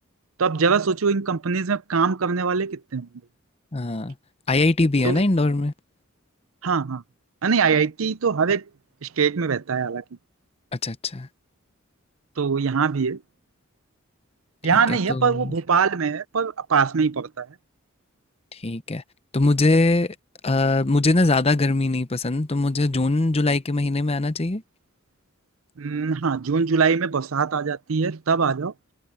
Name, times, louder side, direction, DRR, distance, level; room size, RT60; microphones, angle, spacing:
voice 1, 0.4-3.1 5.0-5.2 6.6-7.0 7.4-8.7 9.0-10.0 12.4-13.2 14.6-17.5 25.8-28.7, right 5 dB, 80° right, 0.6 m, -22 dB
voice 2, 3.7-4.1 4.5-5.7 10.7-11.3 14.9-15.5 18.5-19.0 19.3-20.1 20.4-24.6, left 2 dB, 30° left, 0.8 m, -22 dB
head